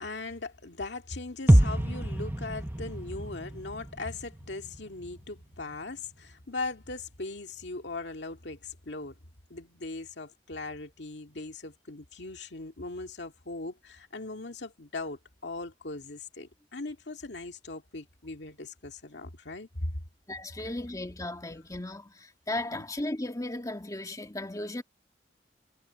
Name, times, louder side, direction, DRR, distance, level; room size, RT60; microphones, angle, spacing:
voice 1, 0.0-9.2 9.5-19.9 22.7-22.9, left 3 dB, 70° left, 2.2 m, -39 dB
sound 1, 1.5-5.4 5.7-5.8, right 1 dB, 10° right, 0.8 m, -26 dB
voice 2, 20.3-24.8, left 1 dB, 20° left, 1.8 m, -36 dB
head